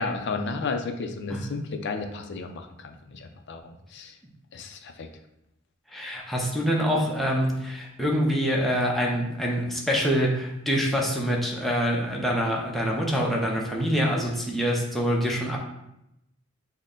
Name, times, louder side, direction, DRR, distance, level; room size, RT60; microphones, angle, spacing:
voice 1, 0.0-4.1 4.5-5.1, left 3 dB, 55° left, 6 dB, 0.5 m, -33 dB
voice 2, 5.9-15.6, equal, ahead, -3 dB, 0.7 m, -25 dB
6.4 x 2.1 x 3.7 m, 0.85 s
head